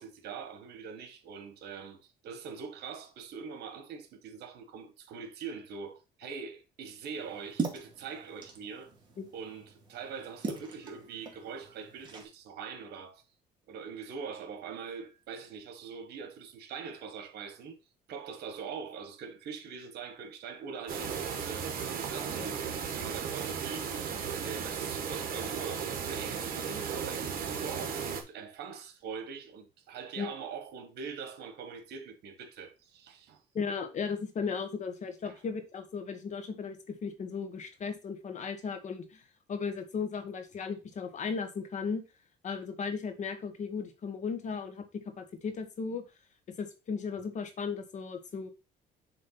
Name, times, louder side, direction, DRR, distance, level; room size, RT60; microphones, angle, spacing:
voice 1, 0.0-8.9 9.3-13.2 13.7-17.8 18.1-21.7 21.9-22.6 22.9-33.4 35.2-35.3, right 6 dB, 75° right, 1.5 m, -43 dB
sound 1, 7.1-12.2, right 4 dB, 30° right, 2.2 m, -41 dB
sound 2, 20.9-28.2, right 7 dB, 60° right, 1.5 m, -35 dB
voice 2, 33.5-39.2 39.5-42.0 42.4-46.0 46.5-48.5, left 5 dB, 45° left, 1.4 m, -36 dB
7.0 x 3.2 x 5.8 m
cardioid pair, 110°, 17 cm